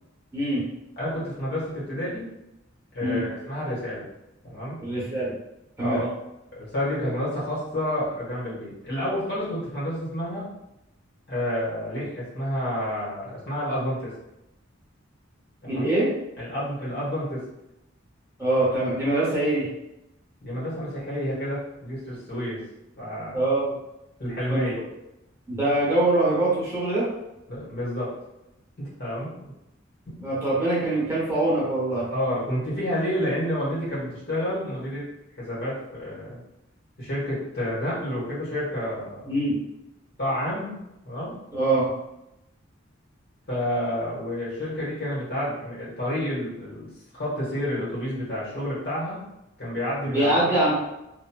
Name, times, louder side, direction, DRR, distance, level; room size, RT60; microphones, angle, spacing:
voice 1, 0.3-0.6 3.0-3.3 4.8-5.4 5.8-6.0 15.7-16.1 18.4-19.7 23.3-23.8 24.5-24.6 25.5-27.1 30.2-32.1 39.2-39.6 41.5-41.9 50.1-50.7, right 2 dB, 15° right, -8 dB, 1.0 m, -23 dB
voice 2, 1.0-2.2 2.9-4.1 4.4-4.8 5.8-6.1 6.5-10.5 11.3-14.1 15.6-15.9 16.4-17.4 20.4-22.6 23.0-23.4 24.2-24.7 27.5-28.1 28.8-29.5 30.1-30.2 32.1-35.0 35.4-36.4 37.0-39.3 40.2-40.7 41.0-41.3 43.5-46.9 47.1-49.2 49.6-50.4, equal, 55° left, -8 dB, 1.3 m, -29 dB
2.9 x 2.5 x 2.3 m, 0.89 s
head